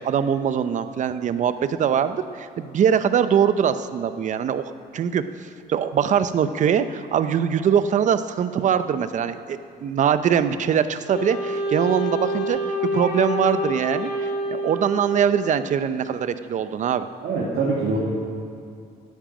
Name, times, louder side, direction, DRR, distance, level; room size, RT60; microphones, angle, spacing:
voice 1, 0.0-5.2 5.7-12.6 12.9-17.1, right 8 dB, 45° right, 12 dB, 0.7 m, -22 dB
Wind instrument woodwind instrument, 11.1-15.7, equal, 60° left, 2.6 m, -27 dB
voice 2, 17.2-18.0, right 3 dB, 65° right, -4 dB, 2.2 m, -24 dB
9.8 x 9.2 x 8.8 m, 2.4 s
cardioid pair, 110°, 17 cm